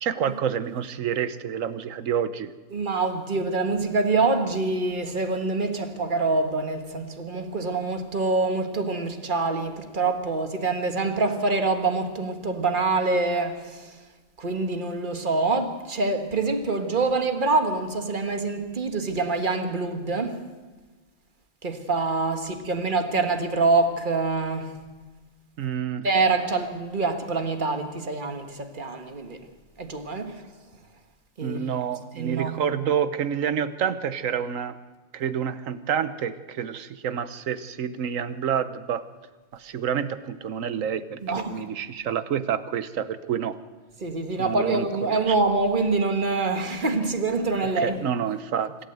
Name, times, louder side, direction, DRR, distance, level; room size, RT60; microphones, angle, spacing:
voice 1, 0.0-2.5 25.6-26.1 31.4-34.8 35.1-39.1 39.5-43.6 44.4-45.3 47.8-48.8, right 8 dB, 80° right, 1.3 m, -28 dB
voice 2, 2.7-14.0 14.4-20.4 21.6-24.7 26.0-29.4 29.8-30.5 31.4-31.7 32.1-32.7 41.2-41.5 44.0-48.0, right 3 dB, 40° right, 1.7 m, -25 dB
25.5 x 13.0 x 8.0 m
omnidirectional pair, 1.3 m